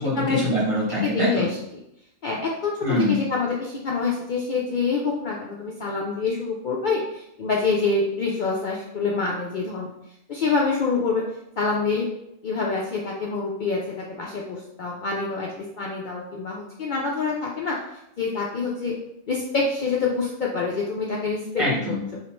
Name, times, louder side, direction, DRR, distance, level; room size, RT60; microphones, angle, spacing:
voice 1, 0.0-1.4 2.8-3.2 21.6-22.0, left 1 dB, 25° right, -7 dB, 1.3 m, -23 dB
voice 2, 1.0-1.5 2.2-9.9 10.3-11.2 11.6-12.1 12.4-17.8 18.2-18.9 19.3-21.6, left 4 dB, 80° left, -2 dB, 0.4 m, -26 dB
2.9 x 2.5 x 4.3 m, 0.81 s
omnidirectional pair, 1.4 m